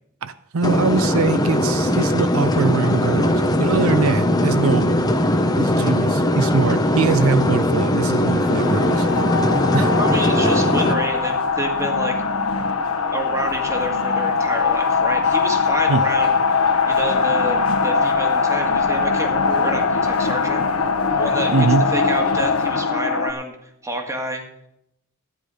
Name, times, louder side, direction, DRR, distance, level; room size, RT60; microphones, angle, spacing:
voice 1, 0.2-5.0 5.6-9.1 9.7-9.9 15.9-16.0 21.5-21.9, right 4 dB, 70° right, 14 dB, 0.5 m, -22 dB
sound 1, 0.6-10.9, left 1 dB, 20° left, 1.0 m, -19 dB
sound 2, 8.3-23.3, left 4 dB, 80° left, 1.3 m, -21 dB
voice 2, 10.0-12.2 13.1-20.6 21.1-24.4, right 1 dB, 15° right, 4 dB, 1.9 m, -29 dB
13.5 x 10.0 x 5.0 m, 0.76 s
head